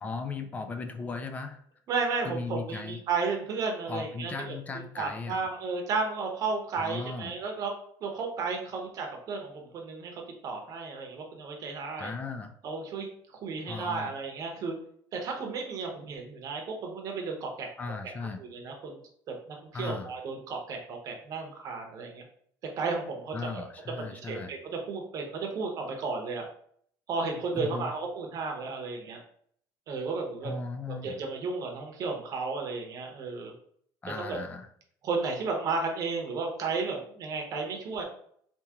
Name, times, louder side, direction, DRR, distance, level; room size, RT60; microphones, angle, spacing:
voice 1, 0.0-1.6 2.2-3.0 3.9-5.5 6.8-7.3 12.0-12.5 13.7-14.1 17.8-18.4 19.7-20.1 23.3-24.5 27.5-27.9 30.4-31.2 34.0-34.7, left 4 dB, 15° left, 7 dB, 0.3 m, -37 dB
voice 2, 1.9-4.5 5.0-7.7 8.0-12.1 12.6-13.1 13.4-14.8 15.1-17.7 18.4-19.0 19.3-22.2 22.8-23.6 24.1-26.4 27.1-29.2 29.9-30.5 31.0-33.5 34.3-34.4 35.0-38.0, right 4 dB, 40° right, 2 dB, 0.8 m, -33 dB
3.6 x 2.8 x 2.9 m, 0.63 s
cardioid pair, 165°, 9 cm